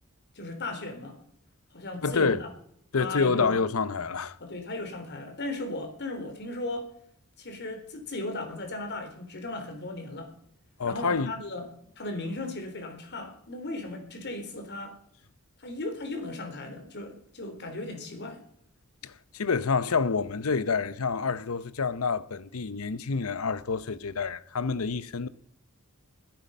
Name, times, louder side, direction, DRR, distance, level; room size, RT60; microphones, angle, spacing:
voice 1, 0.4-1.2 1.7-2.5 3.0-3.5 4.4-6.9 7.4-10.3 10.8-11.7 12.0-15.0 15.6-18.4, left 2 dB, 55° left, 3.5 m, -36 dB
voice 2, 2.0-2.4 2.9-4.4 10.8-11.3 19.0-25.3, left 5 dB, 80° left, 0.8 m, -28 dB
21.0 x 9.1 x 5.5 m
head